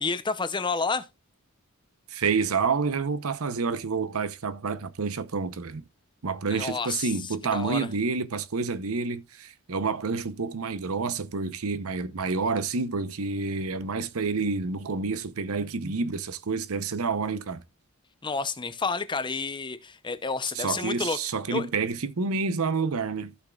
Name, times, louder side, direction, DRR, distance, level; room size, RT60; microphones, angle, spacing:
voice 1, 0.0-1.0 6.5-7.1 7.5-7.9 18.2-21.2 21.5-21.7, left 4 dB, 20° left, 0.6 m, -30 dB
voice 2, 2.1-5.8 6.2-17.6 20.5-23.3, right 4 dB, 70° right, 0.8 m, -29 dB
14.5 x 6.0 x 2.3 m
head